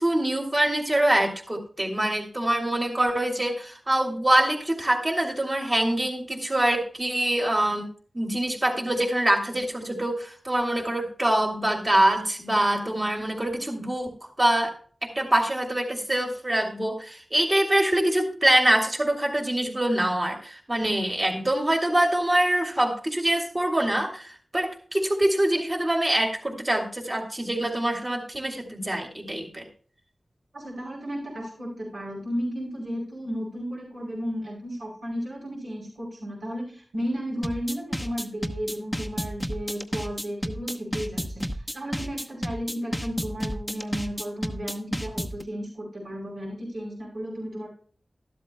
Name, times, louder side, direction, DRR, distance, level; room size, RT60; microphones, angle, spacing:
voice 1, 0.0-7.9 8.1-14.7 15.0-29.7, right 1 dB, 30° right, 1 dB, 2.7 m, -24 dB
voice 2, 30.5-47.7, equal, 70° right, -6 dB, 5.1 m, -34 dB
sound 1, 37.4-45.4, equal, 5° left, 0.9 m, -31 dB
13.0 x 12.5 x 2.3 m, 0.43 s
wide cardioid pair, 90°, 0 cm